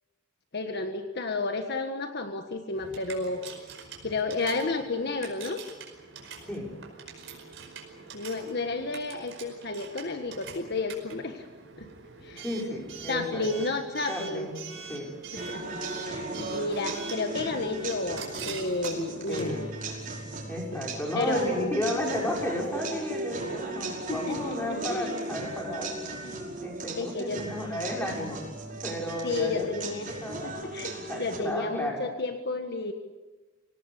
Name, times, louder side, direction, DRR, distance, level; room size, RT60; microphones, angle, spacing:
voice 1, 0.5-3.4 4.0-5.6 8.1-11.5 11.8-11.9 12.2-12.4 13.1-14.5 15.3-19.6 20.7-20.8 21.1-21.8 24.1-25.1 25.4-25.5 26.2-26.4 27.0-27.5 29.2-32.9, left 3 dB, 55° left, 6 dB, 1.5 m, -32 dB
Coin (dropping) / Alarm, 2.7-20.2, right 6 dB, 70° right, 5.2 m, -44 dB
voice 2, 12.4-13.7 14.1-14.5 14.9-15.2 19.3-19.7 20.5-25.9 26.6-28.4 28.8-29.7 30.2-30.8 31.1-32.0, left 1 dB, 10° left, -1 dB, 6.1 m, -33 dB
sound 1, 15.4-31.4, right 2 dB, 45° right, 5.4 m, -37 dB
26.0 x 18.0 x 8.4 m, 1.2 s
head